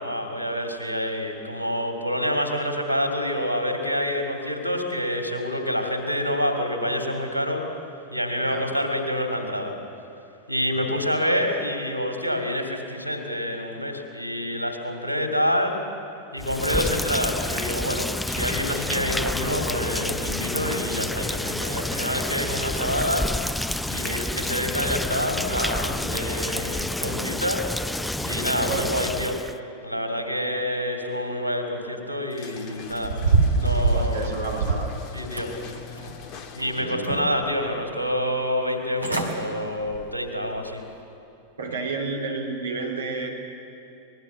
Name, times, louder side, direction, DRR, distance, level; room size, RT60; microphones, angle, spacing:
voice 1, 0.0-7.6 8.1-9.7 10.5-15.8 16.3-23.3 23.9-27.7 28.2-29.4 29.8-33.2 33.5-34.4 35.1-35.5 36.5-40.8, equal, 85° left, 4 dB, 2.7 m, -27 dB
Rain, 16.4-29.6, left 1 dB, 5° left, 0.5 m, -29 dB
voice 2, 28.6-28.9 33.9-34.9 36.8-37.3 41.6-43.3, right 4 dB, 70° right, 0 dB, 3.3 m, -31 dB
sound 1, 32.3-37.1, left 6 dB, 40° left, 1.6 m, -42 dB
sound 2, 32.9-34.9 35.4-36.2 36.6-37.4 37.9-38.0 38.7-38.8 39.0-39.3 39.8-40.1 40.5-40.6, right 3 dB, 85° right, 2.1 m, -24 dB
24.5 x 20.5 x 7.1 m, 2.8 s
figure-of-eight pair, 90°, 0 cm